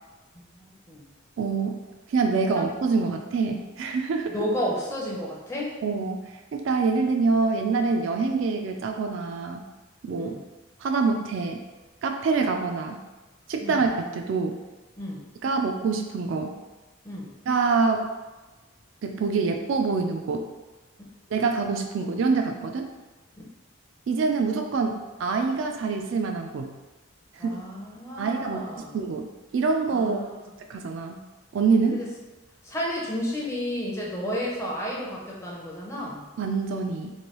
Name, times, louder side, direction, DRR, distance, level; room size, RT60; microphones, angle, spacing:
voice 1, 0.3-1.1 4.3-5.7 10.2-10.4 13.6-13.8 15.0-15.3 17.0-17.3 27.4-29.0 29.9-30.5 31.9-32.1 32.6-36.3, equal, 15° left, -4 dB, 0.5 m, -32 dB
voice 2, 1.4-4.3 5.8-9.6 10.0-10.4 10.8-11.6 12.0-13.0 13.5-14.6 15.4-16.5 17.5-18.1 19.0-20.5 21.3-22.9 24.1-26.7 27.3-27.6 28.2-29.3 29.5-30.2 30.7-31.2 31.5-32.0 36.4-37.1, right 4 dB, 65° right, 4 dB, 0.3 m, -25 dB
3.2 x 2.6 x 2.9 m, 1.2 s
head